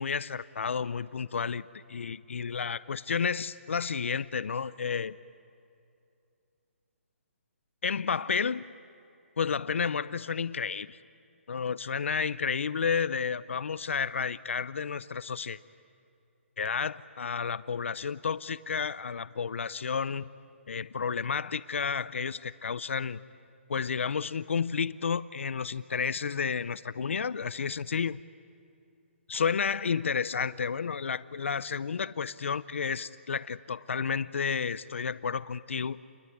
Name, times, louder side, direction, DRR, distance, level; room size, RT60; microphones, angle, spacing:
voice 1, 0.0-5.2 7.8-8.6 9.4-11.0 11.5-15.6 16.6-20.3 20.7-23.2 23.7-28.2 29.3-36.0, left 6 dB, 70° left, 17 dB, 0.6 m, -31 dB
29.5 x 21.0 x 9.4 m, 2.6 s
hypercardioid pair, 175°, 7 cm